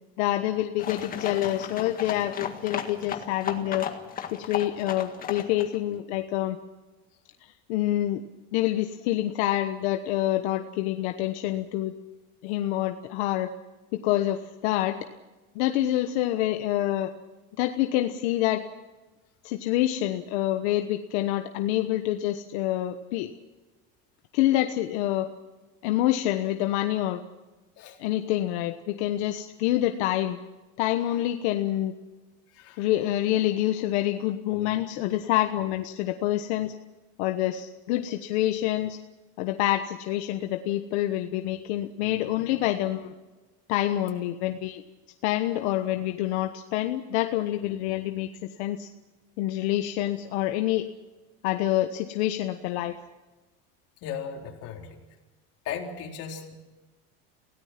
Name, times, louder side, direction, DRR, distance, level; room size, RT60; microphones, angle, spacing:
voice 1, 0.2-3.9 4.3-6.6 7.7-8.2 8.5-11.9 12.4-13.5 13.9-15.0 15.5-17.1 17.6-18.6 19.4-23.3 24.3-25.3 25.8-27.2 28.0-30.4 30.8-31.9 32.8-36.7 37.2-39.0 39.4-43.1 43.7-44.8 45.2-48.3 48.6-48.9 49.4-50.9 51.4-52.9, left 14 dB, 80° left, 6 dB, 1.3 m, -27 dB
sound 1, 0.8-5.8, left 8 dB, 25° left, 1.8 m, -35 dB
voice 2, 32.5-32.8 54.0-55.0 55.6-56.5, left 7 dB, 45° left, 0 dB, 4.1 m, -36 dB
28.5 x 17.5 x 6.0 m, 1.1 s
cardioid pair, 165°, 33 cm